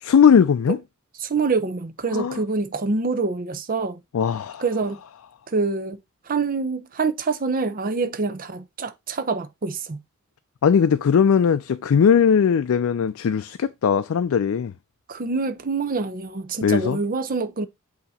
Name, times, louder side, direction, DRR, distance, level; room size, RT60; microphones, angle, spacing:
voice 1, 0.0-0.8 2.1-2.4 4.1-4.6 10.6-14.7 16.6-17.0, left 7 dB, 70° left, 0.4 m, -19 dB
voice 2, 1.2-4.0 4.6-5.0 5.5-6.0 6.3-10.0 15.1-17.7, right 4 dB, 40° right, 0.7 m, -26 dB
8.0 x 2.9 x 4.1 m
head